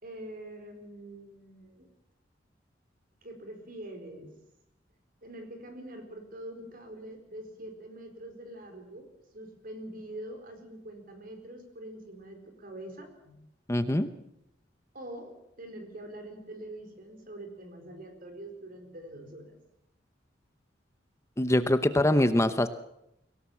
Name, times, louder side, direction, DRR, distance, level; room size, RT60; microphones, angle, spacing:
voice 1, 0.0-1.9 3.2-4.4 5.2-9.1 9.3-13.4 14.9-19.5, right 1 dB, 50° right, 6 dB, 4.5 m, -44 dB
voice 2, 13.7-14.1 21.4-22.7, left 1 dB, 15° left, 10 dB, 0.8 m, -23 dB
23.5 x 17.5 x 7.3 m, 0.83 s
head